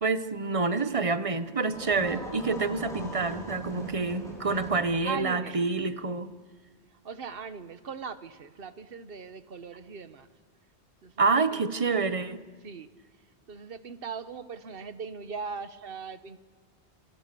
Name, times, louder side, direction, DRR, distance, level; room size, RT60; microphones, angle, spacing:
voice 1, 0.0-6.3 11.2-12.4, right 4 dB, 30° right, 12 dB, 1.0 m, -27 dB
sound 1, 1.7-4.8, equal, 5° left, 6.6 m, -39 dB
voice 2, 5.0-5.7 6.9-10.3 11.0-11.7 12.6-12.9 13.5-16.4, right 5 dB, 55° right, 13 dB, 1.3 m, -39 dB
27.0 x 23.5 x 6.9 m, 1.4 s
omnidirectional pair, 1.1 m